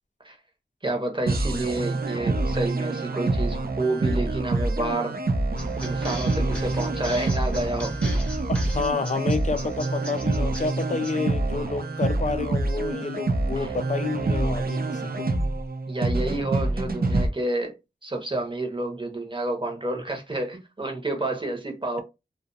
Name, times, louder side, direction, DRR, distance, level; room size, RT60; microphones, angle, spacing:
voice 1, 0.8-5.2 5.8-8.0 13.6-13.7 15.9-17.8 18.0-22.0, right 2 dB, 25° right, 0.8 m, -29 dB
sound 1, 1.3-17.3, right 2 dB, 55° right, 0.5 m, -26 dB
sound 2, 5.6-11.1, equal, 5° left, 0.9 m, -35 dB
voice 2, 8.5-15.3, left 4 dB, 40° left, 0.4 m, -29 dB
2.3 x 2.2 x 2.6 m
wide cardioid pair, 45°, 19 cm